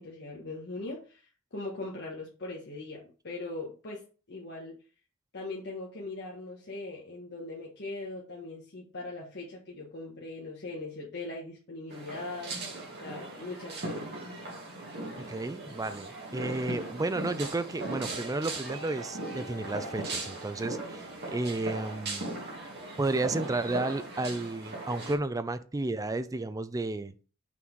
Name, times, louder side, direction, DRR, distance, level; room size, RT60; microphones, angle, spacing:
voice 1, 0.0-4.0 4.3-4.7 5.3-12.5 13.0-14.1, left 2 dB, 50° left, -3 dB, 1.3 m, -40 dB
sound 1, 11.9-25.2, right 2 dB, 50° right, 2.5 m, -38 dB
voice 2, 15.2-22.3 23.0-27.1, right 2 dB, 15° right, 11 dB, 0.4 m, -32 dB
5.9 x 4.1 x 4.6 m, 0.36 s
head